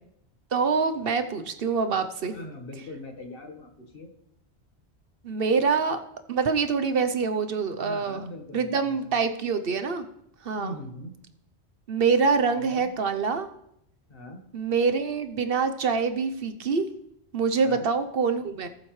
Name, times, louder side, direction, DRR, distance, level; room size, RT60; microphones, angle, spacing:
voice 1, 0.5-2.3 5.2-6.0 6.3-8.2 8.5-10.1 10.4-10.7 11.9-13.5 14.5-16.8 17.3-18.7, right 5 dB, 65° right, 9 dB, 1.0 m, -25 dB
voice 2, 2.3-4.1 7.8-9.2 10.6-11.1 12.5-12.9 14.1-14.4 17.6-17.9, left 1 dB, 60° left, 3 dB, 1.7 m, -41 dB
19.0 x 7.7 x 3.2 m, 0.76 s
omnidirectional pair, 1.1 m